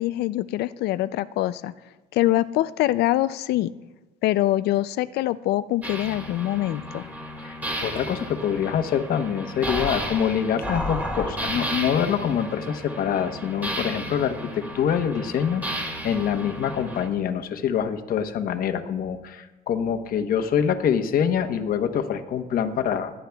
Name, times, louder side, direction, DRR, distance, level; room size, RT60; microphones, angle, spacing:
voice 1, 0.0-1.7 2.1-3.7 4.2-7.1, left 15 dB, 75° left, 15 dB, 0.4 m, -24 dB
sound 1, 5.8-17.1, equal, 10° right, 2.1 m, -33 dB
voice 2, 7.8-23.1, left 8 dB, 60° left, 7 dB, 1.0 m, -25 dB
26.5 x 10.0 x 2.3 m, 1.1 s
cardioid pair, 110°, 17 cm